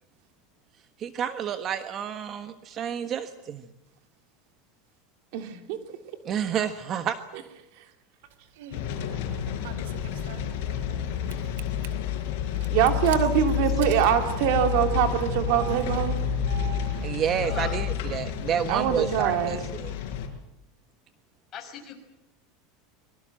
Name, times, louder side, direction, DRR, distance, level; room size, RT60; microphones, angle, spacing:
voice 1, 1.0-3.6 6.2-7.2 17.0-19.9, right 8 dB, 35° right, 9 dB, 1.3 m, -29 dB
voice 2, 5.3-5.8 12.7-16.2 18.7-19.6, right 10 dB, 60° right, 6 dB, 3.1 m, -24 dB
Engine starting, 8.3-8.9 9.6-11.0 11.3-11.9 12.6-17.9, right 11 dB, 80° right, 2.7 m, -38 dB
sound 1, 8.7-20.3, left 10 dB, 65° left, 5.7 m, -30 dB
voice 3, 17.4-17.8 21.5-22.0, left 7 dB, 30° left, 5 dB, 5.4 m, -37 dB
25.0 x 23.0 x 7.7 m, 0.85 s
supercardioid pair, 145°, 0 cm